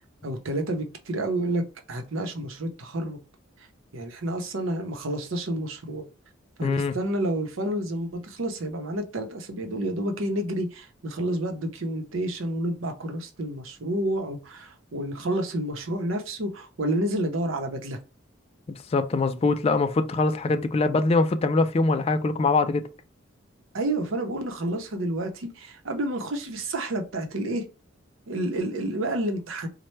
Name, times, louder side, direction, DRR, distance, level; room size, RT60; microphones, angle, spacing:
voice 1, 0.2-3.2 3.9-6.1 6.6-18.0 23.7-27.6 28.3-29.7, right 1 dB, 85° right, 0.7 m, -29 dB
voice 2, 6.6-6.9 18.9-22.8, left 3 dB, 30° left, 0.3 m, -23 dB
4.2 x 2.2 x 3.1 m
head